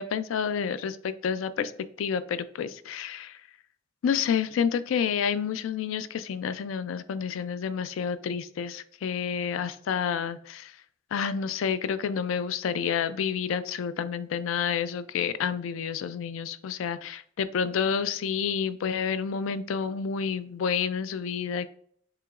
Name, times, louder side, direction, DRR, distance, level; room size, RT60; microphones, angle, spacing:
voice 1, 0.0-1.7 2.0-3.4 4.0-10.7 11.1-21.7, left 7 dB, 85° left, 14 dB, 0.3 m, -29 dB
7.5 x 3.0 x 2.4 m, 0.62 s
head